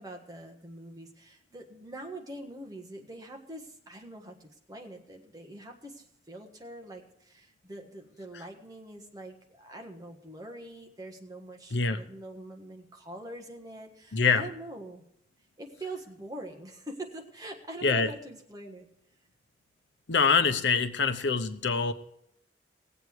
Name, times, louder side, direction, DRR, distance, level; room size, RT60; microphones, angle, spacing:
voice 1, 0.0-15.0 15.6-18.9, right 1 dB, 20° right, 2 dB, 1.4 m, -44 dB
voice 2, 14.1-14.5 17.8-18.1 20.1-21.9, left 5 dB, 80° left, 11 dB, 0.8 m, -25 dB
18.5 x 7.9 x 4.7 m, 0.74 s
head